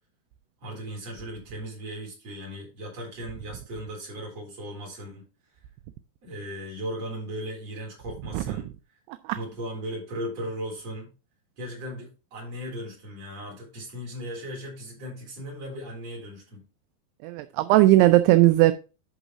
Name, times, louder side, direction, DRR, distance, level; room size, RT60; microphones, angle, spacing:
voice 1, 0.6-5.3 6.2-8.7 9.3-11.1 11.6-16.6, equal, 40° right, 4.4 m, -37 dB
voice 2, 17.2-18.7, right 16 dB, 85° right, 2.5 m, -18 dB
11.0 x 4.0 x 4.6 m
omnidirectional pair, 4.8 m